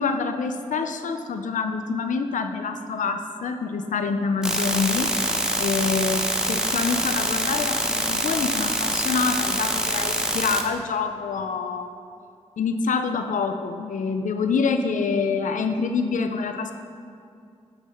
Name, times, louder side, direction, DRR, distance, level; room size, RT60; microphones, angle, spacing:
voice 1, 0.0-5.1 5.6-6.2 6.5-11.9 12.6-16.7, left 5 dB, 85° left, 7 dB, 0.6 m, -26 dB
sound 1, 4.4-10.6, right 1 dB, 5° right, 0.8 m, -25 dB
7.4 x 6.7 x 5.5 m, 2.4 s
cardioid pair, 70°, 13 cm